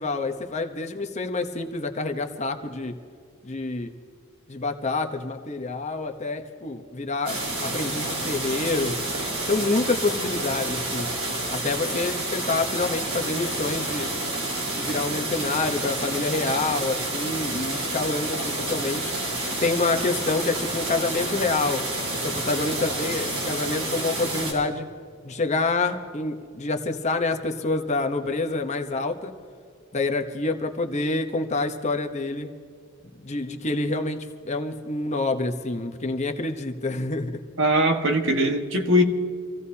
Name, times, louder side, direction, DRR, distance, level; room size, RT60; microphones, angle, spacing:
voice 1, 0.0-2.9 3.4-3.9 4.5-9.0 9.5-11.1 11.5-14.1 14.7-19.1 19.6-21.8 22.2-24.9 25.2-29.3 29.9-32.5 33.2-37.4, left 3 dB, 30° left, 6 dB, 0.9 m, -27 dB
sound 1, 7.3-24.5, right 2 dB, 75° right, 5.1 m, -29 dB
voice 2, 37.6-39.0, equal, 55° right, 4 dB, 1.5 m, -21 dB
27.0 x 16.0 x 2.8 m, 2.2 s
head